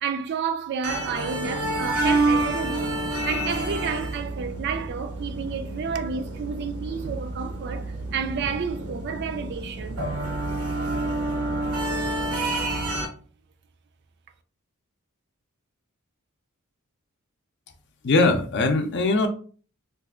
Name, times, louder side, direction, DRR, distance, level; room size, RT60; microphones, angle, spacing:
voice 1, 0.0-3.0 3.3-10.0, right 6 dB, 50° right, 0.3 m, -30 dB
sound 1, 0.8-13.1, right 2 dB, 85° right, 0.8 m, -28 dB
voice 2, 18.0-19.3, left 3 dB, 55° left, 0.5 m, -21 dB
2.6 x 2.4 x 3.6 m
head